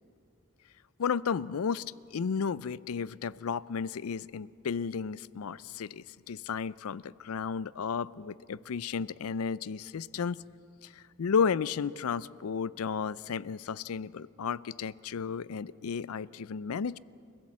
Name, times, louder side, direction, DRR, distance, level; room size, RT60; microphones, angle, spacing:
voice 1, 1.0-1.8 2.1-10.4 10.8-17.0, left 6 dB, 80° left, 20 dB, 0.4 m, -33 dB
29.5 x 16.0 x 7.4 m, 2.5 s
head